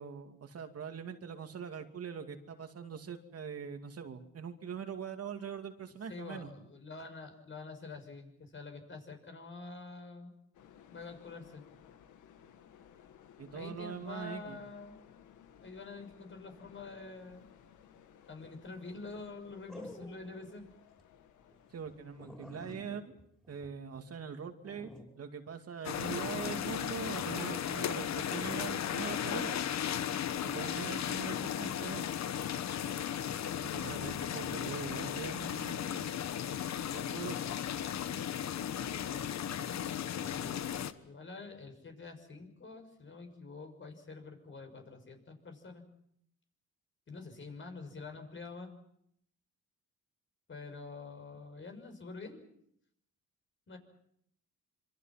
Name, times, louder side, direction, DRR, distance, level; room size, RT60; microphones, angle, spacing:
voice 1, 0.0-6.5 13.4-14.6 21.7-23.1 23.5-24.9 25.2-29.6 30.4-32.1 33.6-36.2 36.9-37.5, right 7 dB, 50° right, 6 dB, 2.6 m, -42 dB
voice 2, 6.1-10.3 10.9-11.6 13.5-15.0 15.6-17.5 18.3-20.7 30.6-30.8 38.9-39.4 40.1-45.8 47.1-48.7 50.5-52.4 53.7-53.8, left 3 dB, 40° left, 5 dB, 6.0 m, -47 dB
sound 1, 10.5-22.4, left 9 dB, 80° left, 1.9 m, -59 dB
sound 2, 18.1-18.5 19.7-20.5 20.9-21.0 21.5-21.6 21.8-21.9 22.2-24.2 24.6-25.1 26.0-26.8 27.2-27.6 28.2-28.4, left 1 dB, ahead, 5.6 m, -51 dB
sound 3, 25.8-40.9, left 9 dB, 60° left, 1.2 m, -36 dB
26.5 x 24.0 x 6.0 m, 0.73 s
cardioid pair, 90°, 30 cm